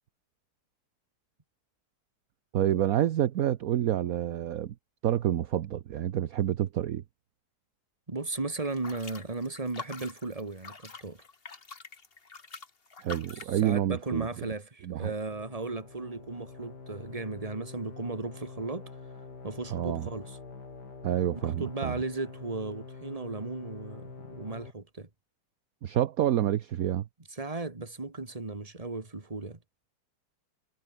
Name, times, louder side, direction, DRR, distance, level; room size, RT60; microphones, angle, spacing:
voice 1, 2.5-4.7 5.0-7.0 13.0-14.3 14.8-15.1 19.7-20.1 21.0-21.9 25.8-27.1, right 11 dB, 65° right, 1.2 m, -28 dB
voice 2, 8.1-11.2 13.5-18.9 19.4-20.4 21.4-25.1 27.3-29.6, right 3 dB, 20° right, 2.2 m, -36 dB
sound 1, 8.6-13.6, left 4 dB, 35° left, 1.9 m, -45 dB
sound 2, 15.3-24.7, left 4 dB, 85° left, 3.7 m, -46 dB
omnidirectional pair, 1.8 m